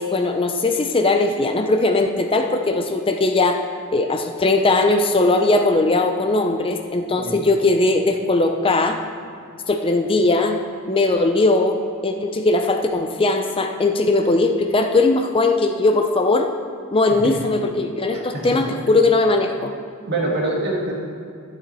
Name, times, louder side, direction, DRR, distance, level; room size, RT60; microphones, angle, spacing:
voice 1, 0.0-3.6 3.9-9.0 9.7-10.6 10.9-16.5 16.9-19.7, left 2 dB, 25° left, 5 dB, 0.5 m, -19 dB
voice 2, 18.1-18.7 20.1-20.9, right 2 dB, 50° right, -2 dB, 2.0 m, -25 dB
12.0 x 8.0 x 4.1 m, 2.4 s
head